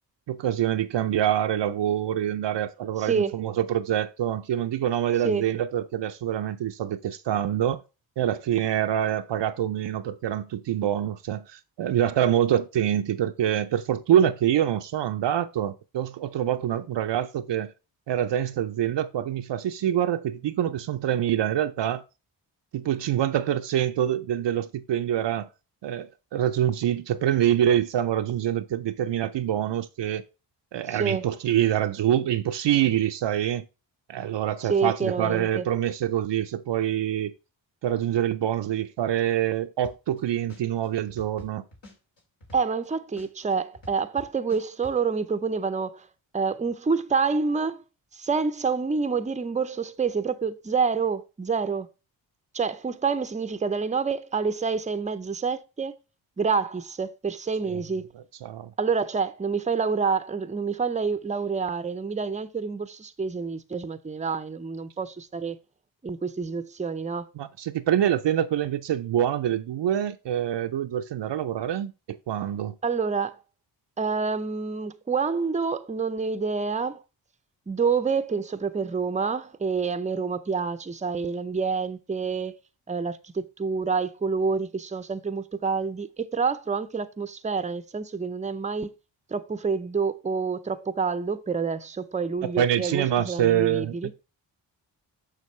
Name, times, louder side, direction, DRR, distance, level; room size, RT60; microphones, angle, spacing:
voice 1, 0.3-7.8 8.2-17.7 18.1-22.0 22.7-25.5 25.8-30.2 30.7-33.6 34.1-37.3 37.8-41.6 57.7-57.8 58.4-58.7 67.4-72.7 92.4-94.2, right 11 dB, 60° right, 0.5 m, -25 dB
voice 2, 3.0-3.3 5.2-5.5 30.9-31.3 34.6-35.7 42.5-46.1 46.3-47.8 48.1-51.9 52.5-56.0 56.4-58.1 58.8-65.6 66.0-67.3 72.8-73.4 74.0-77.0 77.7-82.6 82.9-88.9 89.3-94.1, right 5 dB, 15° right, 0.5 m, -27 dB
sound 1, 39.8-40.2 40.5-42.9 43.2-45.0, left 1 dB, 65° left, 2.4 m, -46 dB
6.5 x 6.3 x 3.1 m
cardioid pair, 40°, 48 cm